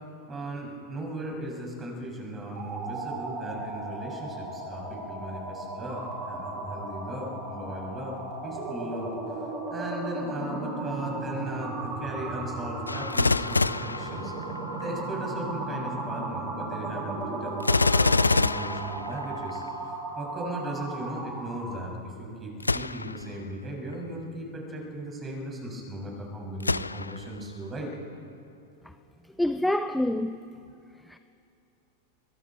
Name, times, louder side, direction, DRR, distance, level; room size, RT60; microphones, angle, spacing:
voice 1, 0.3-9.1 9.4-14.3 14.8-19.6 20.2-27.9, right 1 dB, 20° right, 7.0 m, -37 dB
sound 1, 2.4-21.9, right 2 dB, 40° right, 6.0 m, -36 dB
Gunshot gunfire, 12.9-14.9 17.6-19.7 22.6-23.3 23.9-24.0 26.6-27.4 27.9-28.0, left 3 dB, 80° left, 0.4 m, -26 dB
voice 2, 29.4-30.4 31.1-31.2, left 1 dB, 5° left, 0.6 m, -26 dB
26.0 x 22.5 x 4.7 m
figure-of-eight pair, 90°, 0 cm